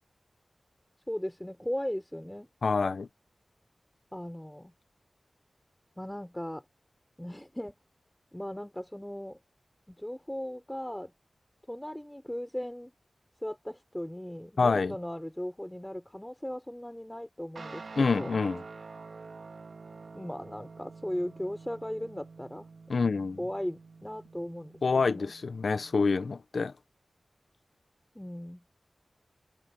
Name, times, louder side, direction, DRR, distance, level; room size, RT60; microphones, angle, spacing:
voice 1, 1.1-2.5 4.1-4.7 6.0-6.6 7.2-7.7 8.3-9.4 9.9-11.1 11.7-12.9 13.4-18.4 20.1-22.7 23.4-24.8 25.0-25.3 28.1-28.6, equal, 10° left, 5.1 m, -37 dB
voice 2, 2.6-3.1 14.6-14.9 18.0-18.6 22.9-23.4 24.8-26.7, left 4 dB, 75° left, 1.0 m, -27 dB
Guitar, 17.6-26.3, right 4 dB, 75° right, 4.4 m, -48 dB
wide cardioid pair, 85°, 0 cm